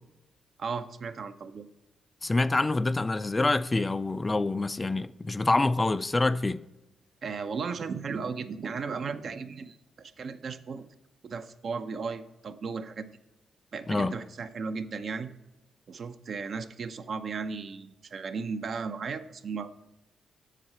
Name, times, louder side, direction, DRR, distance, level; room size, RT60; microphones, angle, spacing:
voice 1, 0.6-1.7 7.2-10.9 11.2-13.1 13.7-15.3 15.9-19.8, right 5 dB, 55° right, 0.6 m, -35 dB
voice 2, 2.2-6.6 13.9-14.2, left 2 dB, 20° left, 0.3 m, -26 dB
7.4 x 6.6 x 4.3 m
cardioid pair, 80°, 0 cm